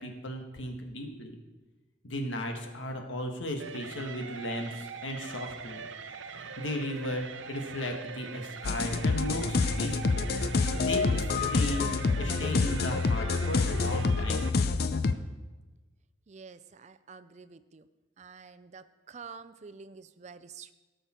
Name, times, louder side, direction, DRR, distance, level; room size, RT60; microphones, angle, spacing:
voice 1, 0.0-1.4 2.0-5.8 6.6-10.3 10.7-11.9 12.2-14.5, left 1 dB, 80° left, 4 dB, 1.5 m, -36 dB
sound 1, 3.6-14.5, right 5 dB, 80° right, 0.7 m, -42 dB
sound 2, 8.6-15.1, left 4 dB, 50° left, 0.5 m, -27 dB
voice 2, 16.3-17.9 18.2-20.7, right 5 dB, 35° right, 12 dB, 0.4 m, -48 dB
17.5 x 6.7 x 4.3 m, 1.2 s
head